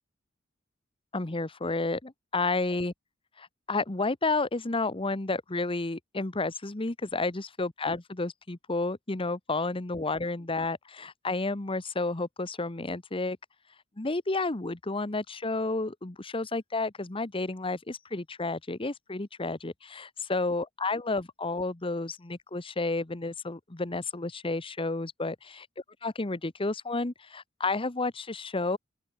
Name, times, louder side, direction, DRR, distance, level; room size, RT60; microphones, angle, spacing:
voice 1, 1.1-2.9 3.4-13.4 14.0-25.6 26.0-28.8, left 3 dB, 25° left, 1.1 m, -31 dB
open air
head